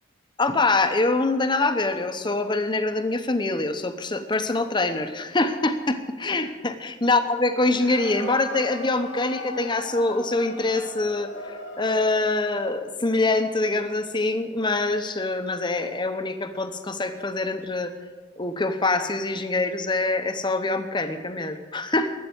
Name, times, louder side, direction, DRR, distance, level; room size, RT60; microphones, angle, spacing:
voice 1, 0.4-17.9 18.4-22.1, left 2 dB, 25° left, 8 dB, 0.9 m, -24 dB
sound 1, 7.5-12.4, left 3 dB, 80° left, 2.2 m, -38 dB
12.5 x 8.3 x 8.0 m, 1.4 s
head